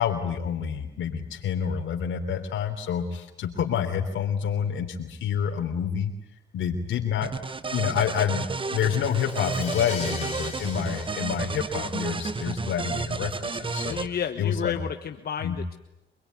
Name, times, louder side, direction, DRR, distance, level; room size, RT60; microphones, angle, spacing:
voice 1, 0.0-6.1 6.5-7.3 7.7-14.0 14.4-14.8 15.4-15.6, left 8 dB, 75° left, 3 dB, 3.4 m, -28 dB
sound 1, 7.2-14.1, right 4 dB, 25° right, 1.1 m, -32 dB
Crash cymbal, 9.0-12.7, left 5 dB, 30° left, 4.7 m, -40 dB
voice 2, 13.8-15.7, left 8 dB, 50° left, 6 dB, 1.4 m, -32 dB
27.5 x 22.0 x 9.6 m, 0.85 s
cardioid pair, 90°, 20 cm